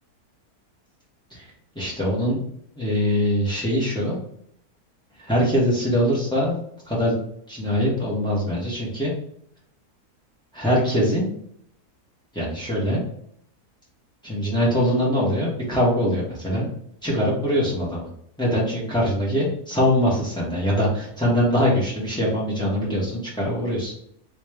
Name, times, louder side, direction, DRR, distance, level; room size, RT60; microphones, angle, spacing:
voice 1, 1.7-2.4 2.8-4.2 5.3-7.2 7.5-9.1 10.5-11.3 12.3-13.0 14.2-16.7 17.0-18.1 18.4-23.9, equal, 5° left, -6 dB, 1.2 m, -23 dB
3.2 x 3.1 x 3.3 m, 0.70 s
omnidirectional pair, 1.7 m